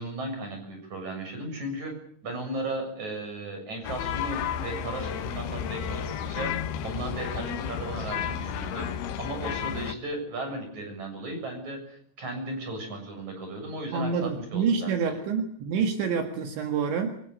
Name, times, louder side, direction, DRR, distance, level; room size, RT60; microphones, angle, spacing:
voice 1, 0.0-1.9 2.2-6.5 6.8-14.9, right 2 dB, 35° right, 4 dB, 8.3 m, -36 dB
sound 1, 3.8-9.9, left 9 dB, 65° left, 2.9 m, -32 dB
voice 2, 13.9-17.2, right 6 dB, 70° right, 5 dB, 3.9 m, -27 dB
27.0 x 15.5 x 9.9 m, 0.63 s
omnidirectional pair, 5.7 m